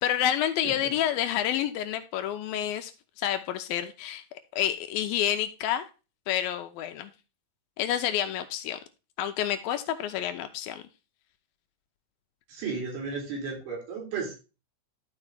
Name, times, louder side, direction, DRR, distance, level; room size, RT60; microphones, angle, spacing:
voice 1, 0.0-2.9 3.2-4.2 4.5-5.9 6.3-7.1 7.8-8.8 9.2-10.8, left 11 dB, 80° left, 8 dB, 2.3 m, -29 dB
voice 2, 12.5-14.4, right 4 dB, 85° right, -1 dB, 5.3 m, -34 dB
13.0 x 4.9 x 3.5 m, 0.31 s
omnidirectional pair, 4.6 m